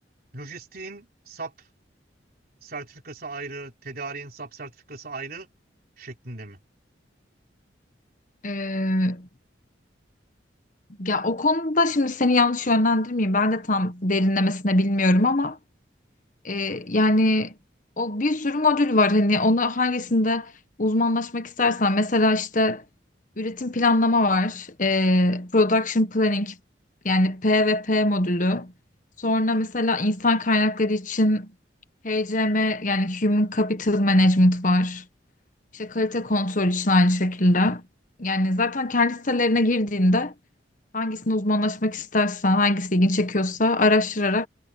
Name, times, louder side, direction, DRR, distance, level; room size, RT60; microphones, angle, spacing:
voice 1, 0.3-1.5 2.6-5.5 6.0-6.6, right 3 dB, 50° right, 3.8 m, -37 dB
voice 2, 8.4-9.3 11.0-15.6 16.4-17.5 18.0-20.5 20.8-22.8 23.4-26.5 27.0-28.7 29.2-31.5 32.0-35.0 35.7-37.8 38.2-40.3 40.9-44.5, left 2 dB, 45° left, 1.4 m, -22 dB
head